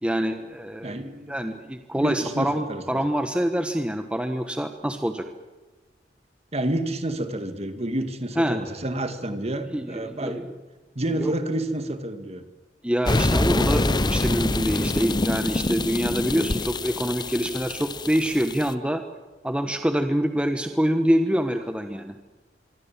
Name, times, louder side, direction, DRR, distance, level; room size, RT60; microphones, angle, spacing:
voice 1, 0.0-1.0 1.3-5.2 8.4-8.6 9.7-10.4 11.2-11.3 12.8-19.0 19.4-22.1, equal, 5° right, 6 dB, 1.1 m, -25 dB
voice 2, 0.8-1.3 1.9-3.0 6.5-10.5 11.0-12.4, right 1 dB, 35° right, 8 dB, 2.2 m, -29 dB
sound 1, 13.1-18.7, left 2 dB, 25° left, 0.8 m, -25 dB
25.5 x 24.0 x 7.4 m, 1.2 s
head